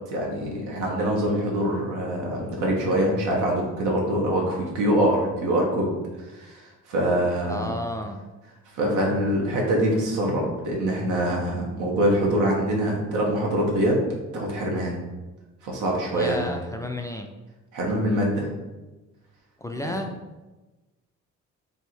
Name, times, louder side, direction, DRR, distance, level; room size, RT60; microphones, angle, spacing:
voice 1, 0.1-5.9 6.3-7.7 8.7-14.0 14.3-15.0 15.6-16.5 17.7-18.5 19.8-20.0, right 1 dB, 90° right, -1 dB, 1.1 m, -24 dB
voice 2, 7.5-8.2 16.1-17.3 19.6-20.1, left 1 dB, 10° left, 3 dB, 0.3 m, -32 dB
3.4 x 2.6 x 4.4 m, 1.1 s
cardioid pair, 90°, 30 cm